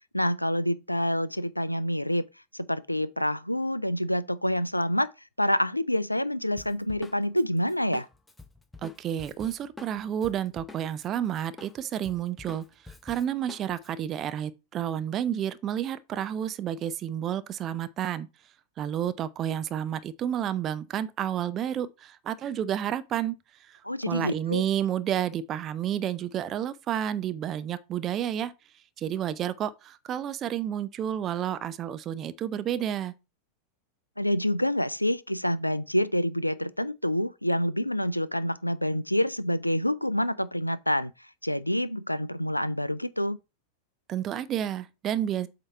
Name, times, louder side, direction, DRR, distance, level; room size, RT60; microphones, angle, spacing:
voice 1, 0.1-2.2 2.7-5.1 5.4-8.1 23.8-24.6 34.2-41.1 41.4-43.4, equal, 85° left, 0.4 m, -27 dB
Drum kit, 6.6-11.1 11.3-13.9, left 3 dB, 5° left, 0.8 m, -47 dB
voice 2, 8.8-12.6 13.0-18.3 18.8-23.3 23.7-23.8 24.1-28.5 29.0-33.1 44.1-45.5, right 10 dB, 30° right, 0.6 m, -30 dB
7.9 x 2.9 x 5.5 m
figure-of-eight pair, 90°, 0 cm